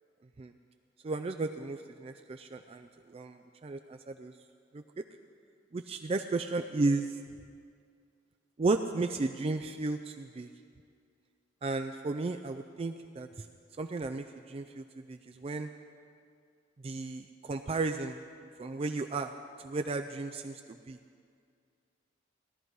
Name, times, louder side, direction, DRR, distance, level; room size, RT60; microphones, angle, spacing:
voice 1, 1.0-3.8 4.1-4.3 4.7-5.0 5.7-7.2 8.6-10.5 11.6-13.5 13.8-15.7 16.8-18.2 18.6-19.3 19.6-21.0, right 3 dB, 30° right, 6 dB, 0.4 m, -34 dB
17.0 x 11.5 x 4.7 m, 2.2 s
head